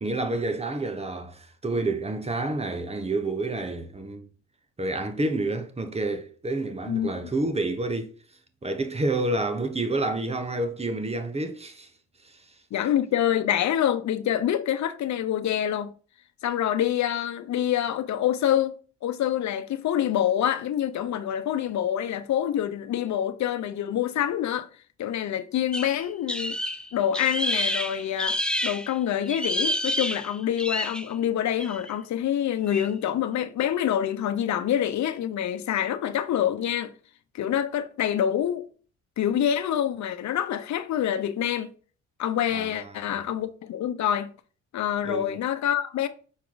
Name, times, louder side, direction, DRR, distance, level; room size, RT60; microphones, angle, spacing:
voice 1, 0.0-4.3 4.8-8.1 8.6-11.9 12.2-12.5 42.5-43.2 45.0-45.3, right 2 dB, 20° right, 1.2 m, -29 dB
voice 2, 12.7-15.9 16.4-18.7 19.0-24.7 25.0-26.6 26.9-36.9 37.3-38.6 39.2-41.7 42.2-44.3 44.7-46.1, left 10 dB, 65° left, 0.9 m, -26 dB
sound 1, 25.7-28.9 29.3-31.1 31.6-31.9 32.7-32.9, left 1 dB, 5° left, 0.6 m, -29 dB
6.5 x 4.5 x 3.9 m
cardioid pair, 90°, 30 cm